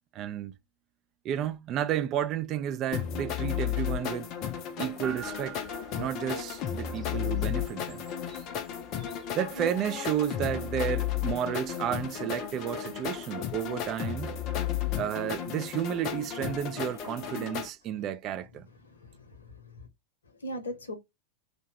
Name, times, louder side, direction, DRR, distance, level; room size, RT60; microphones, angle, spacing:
voice 1, 0.1-0.5 1.2-4.3 4.8-5.6 6.0-8.0 9.4-14.3 14.9-18.7, right 10 dB, 35° right, 0.3 m, -32 dB
sound 1, 2.9-17.7, left 10 dB, 40° left, 0.4 m, -34 dB
sound 2, 5.0-18.0, right 4 dB, 15° right, 0.8 m, -52 dB
voice 2, 14.6-15.0 18.9-19.9 20.4-20.9, equal, 70° left, 0.7 m, -40 dB
2.6 x 2.1 x 2.8 m
figure-of-eight pair, 90°, 0 cm